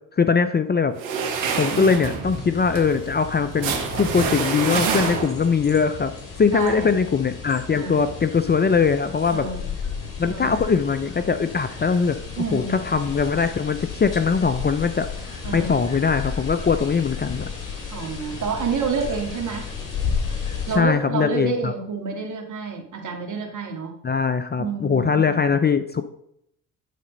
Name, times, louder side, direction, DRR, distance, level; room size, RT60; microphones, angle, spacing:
voice 1, 0.2-0.9 1.6-6.1 6.4-9.5 10.2-17.5 20.7-21.7 24.0-26.0, left 5 dB, 25° left, 11 dB, 0.6 m, -21 dB
sound 1, 1.0-5.6, right 5 dB, 85° right, 1.1 m, -27 dB
sound 2, 2.2-20.8, left 6 dB, 50° left, 3.5 m, -33 dB
voice 2, 4.7-5.1 6.5-6.9 7.7-8.1 9.3-9.7 10.3-10.5 12.4-12.8 15.4-15.8 17.9-19.7 20.7-23.9 24.6-25.4, right 5 dB, 45° right, 2 dB, 2.1 m, -29 dB
9.3 x 4.2 x 5.3 m, 0.73 s
hypercardioid pair, 50°, 40 cm